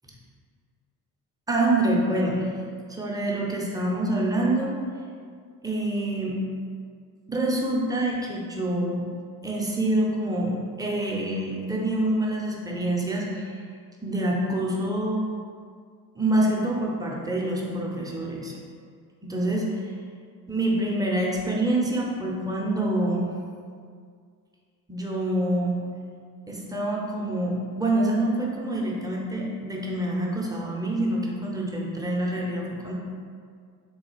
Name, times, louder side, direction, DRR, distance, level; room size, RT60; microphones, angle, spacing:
voice 1, 1.5-2.5 2.9-4.7 5.6-6.4 7.3-9.1 9.4-13.6 14.0-15.3 16.2-18.5 19.2-19.8 20.5-23.3 24.9-25.8 26.5-32.9, right 1 dB, 10° right, -3 dB, 0.5 m, -26 dB
3.4 x 2.4 x 3.1 m, 2.1 s
figure-of-eight pair, 40°, 48 cm